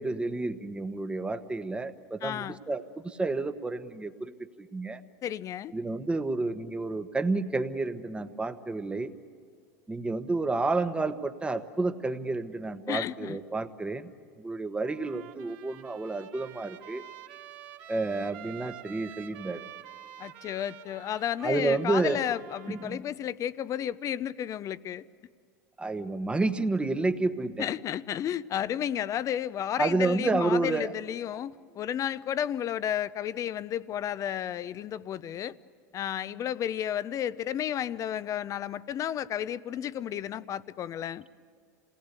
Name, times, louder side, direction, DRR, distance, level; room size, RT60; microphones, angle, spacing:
voice 1, 0.0-4.3 4.6-5.0 5.7-9.1 9.9-14.1 14.4-17.0 17.9-19.6 21.4-22.2 22.8-23.0 25.8-27.6 29.8-30.9, right 3 dB, 10° right, 1.2 m, -30 dB
voice 2, 2.2-2.6 5.2-5.7 12.9-13.4 20.2-25.0 27.6-35.5 35.9-41.2, left 10 dB, 40° left, 0.7 m, -32 dB
Trumpet, 14.8-23.0, right 11 dB, 60° right, 1.9 m, -48 dB
27.5 x 19.0 x 8.2 m
hypercardioid pair, 100°, 9 cm